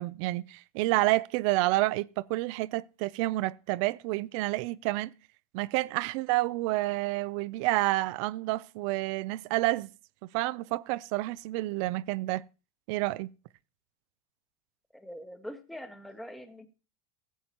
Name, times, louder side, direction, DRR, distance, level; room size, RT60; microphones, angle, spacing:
voice 1, 0.0-5.1 5.5-9.9 10.3-12.4 12.9-13.3, right 19 dB, 55° right, 0.4 m, -29 dB
voice 2, 14.9-16.7, equal, ahead, 0.9 m, -43 dB
15.5 x 7.9 x 2.9 m
supercardioid pair, 125°, 19 cm